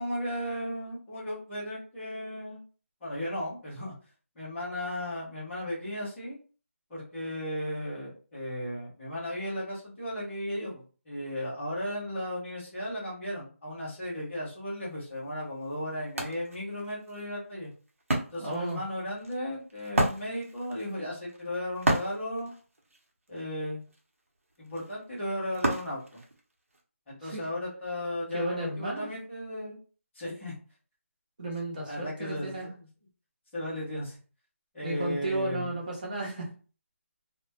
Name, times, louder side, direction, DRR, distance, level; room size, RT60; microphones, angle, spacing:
voice 1, 0.0-2.6 3.0-3.9 4.3-6.4 6.9-17.7 18.3-22.5 23.3-23.8 24.6-26.2 27.1-29.8 30.1-30.5 31.9-32.9 33.5-34.2 34.7-35.8, left 1 dB, ahead, -17 dB, 0.3 m, -35 dB
Wood, 15.1-15.2 15.6-26.8, right 1 dB, 70° right, 0.8 m, -34 dB
voice 2, 18.4-18.8 27.2-27.4 28.3-29.1 31.4-32.7 34.8-36.5, right 1 dB, 35° right, -4 dB, 0.7 m, -33 dB
2.2 x 2.0 x 2.8 m, 0.37 s
figure-of-eight pair, 175°, 8 cm